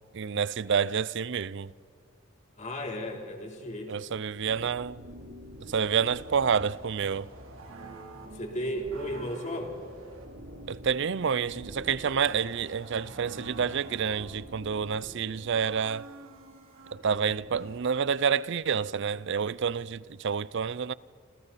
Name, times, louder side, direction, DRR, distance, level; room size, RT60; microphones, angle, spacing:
voice 1, 0.1-1.7 3.9-5.0 5.7-7.3 10.7-16.1 16.9-20.9, right 6 dB, 60° right, 0.5 m, -28 dB
voice 2, 2.6-4.0 8.3-9.8, equal, 35° left, 3.6 m, -34 dB
sound 1, 4.4-17.8, right 1 dB, 75° right, 3.2 m, -46 dB
28.5 x 26.5 x 4.2 m
head